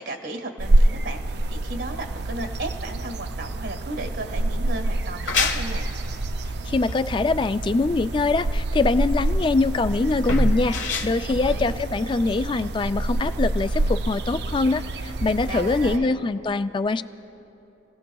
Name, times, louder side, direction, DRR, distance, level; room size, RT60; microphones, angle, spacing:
voice 1, 0.0-5.9 11.3-11.7 15.4-16.2, right 2 dB, 80° right, 4 dB, 1.5 m, -35 dB
sound 1, 0.6-16.0, right 1 dB, 60° right, 0.5 m, -26 dB
sound 2, 5.0-12.4, left 5 dB, 85° left, 1.3 m, -31 dB
voice 2, 6.7-10.8 11.0-17.0, left 3 dB, 25° left, 12 dB, 0.3 m, -23 dB
29.5 x 17.0 x 2.3 m, 3.0 s
head